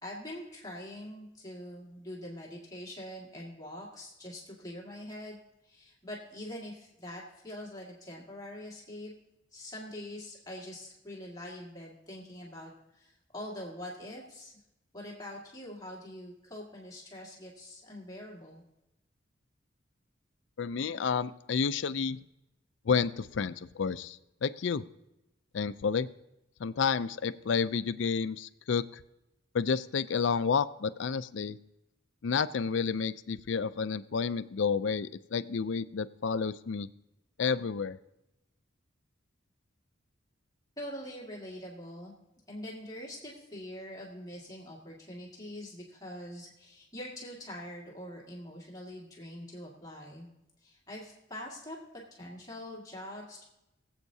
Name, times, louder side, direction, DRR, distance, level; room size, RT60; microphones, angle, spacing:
voice 1, 0.0-5.4 5.6-9.1 9.5-14.5 14.9-18.6 40.8-42.1 42.5-50.3 50.6-53.4, left 1 dB, 20° left, -4 dB, 2.0 m, -44 dB
voice 2, 20.6-22.2 22.9-24.8 25.5-26.1 26.6-29.0 29.5-31.6 32.2-36.9 37.4-38.0, left 5 dB, 70° left, 14 dB, 0.4 m, -30 dB
22.5 x 7.9 x 2.8 m, 0.91 s
head